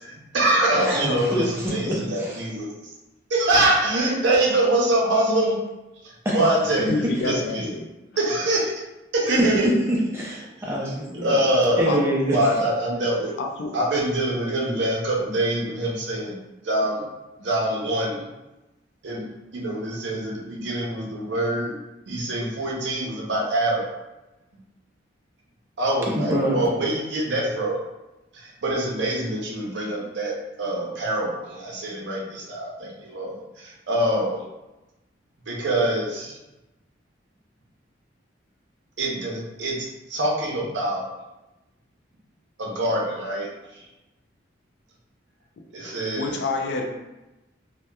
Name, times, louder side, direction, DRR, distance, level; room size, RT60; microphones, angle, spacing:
voice 1, 0.0-2.9 3.3-5.6 6.0-7.8 8.2-8.8 9.1-9.7 10.6-10.9 11.2-13.3 13.7-16.4 16.6-17.1 17.4-18.3 19.0-21.8 22.1-23.8 25.8-27.8 28.3-30.3 30.6-34.4 35.5-36.4 39.0-41.1 42.6-43.8 45.7-46.4, right 1 dB, 70° right, -3 dB, 0.6 m, -24 dB
voice 2, 0.8-2.4 6.2-6.4 6.8-6.9 9.3-9.4 9.9-11.5 11.8-12.5 26.1-26.6, equal, 15° right, -4 dB, 0.4 m, -26 dB
voice 3, 6.9-7.8 11.9-12.0 13.4-13.7 46.1-46.8, left 3 dB, 65° left, 2 dB, 0.3 m, -27 dB
2.8 x 2.2 x 2.2 m, 1.0 s
head